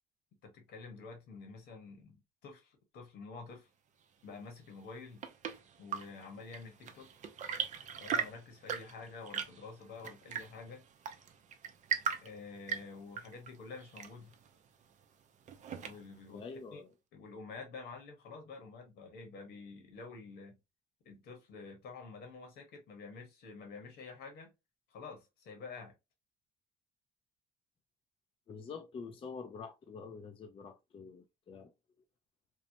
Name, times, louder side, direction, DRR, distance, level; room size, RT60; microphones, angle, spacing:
voice 1, 0.4-3.7 4.2-5.2 5.8-7.1 8.0-10.8 12.2-14.3 15.8-16.4 16.7-16.8 17.1-20.6 21.0-24.5 24.9-25.9, left 4 dB, 75° left, 1.2 m, -49 dB
Chirp tweet / Engine / Tap, 4.8-16.3, right 7 dB, 45° right, 0.5 m, -40 dB
voice 2, 16.3-16.9 28.5-31.7, left 5 dB, 30° left, 0.4 m, -46 dB
3.0 x 2.0 x 2.7 m
cardioid pair, 110°, 17 cm